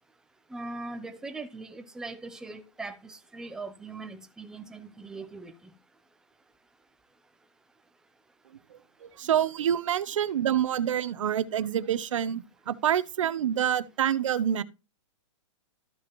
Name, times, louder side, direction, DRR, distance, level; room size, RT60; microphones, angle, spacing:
voice 1, 0.5-5.5, right 3 dB, 5° right, 0.6 m, -40 dB
voice 2, 8.7-14.6, right 10 dB, 80° right, 0.8 m, -27 dB
14.0 x 5.0 x 3.0 m
hypercardioid pair, 160°, 16 cm